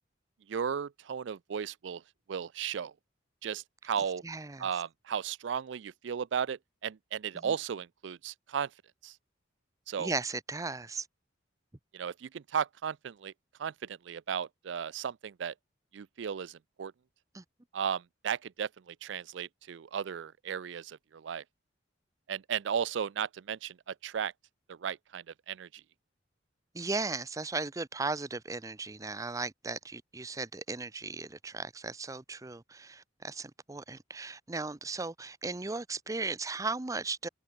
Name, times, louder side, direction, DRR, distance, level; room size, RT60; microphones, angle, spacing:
voice 1, 0.5-2.0 2.3-2.9 3.4-4.2 4.6-8.7 9.0-9.1 9.9-10.1 11.9-13.3 13.6-15.5 15.9-16.9 17.7-21.4 22.3-24.3 24.7-25.7, right 7 dB, 70° right, 0.4 m, -35 dB
voice 2, 4.2-4.7 7.3-7.5 10.0-11.1 17.3-17.4 26.7-37.3, right 3 dB, 15° right, 0.6 m, -36 dB
head